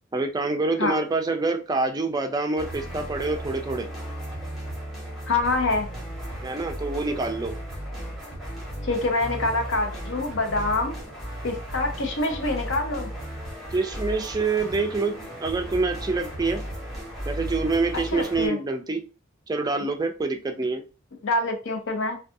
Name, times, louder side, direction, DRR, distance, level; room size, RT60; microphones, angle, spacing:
voice 1, 0.1-3.9 6.4-7.5 13.7-16.6 17.3-19.0 19.5-20.8, right 3 dB, 20° right, 5 dB, 0.4 m, -26 dB
sound 1, 2.6-18.5, equal, ahead, 1.0 m, -35 dB
voice 2, 5.3-5.9 8.8-11.0 11.4-13.1 18.1-18.6 21.2-22.2, left 2 dB, 65° left, 4 dB, 0.6 m, -25 dB
2.5 x 2.3 x 2.6 m, 0.33 s
head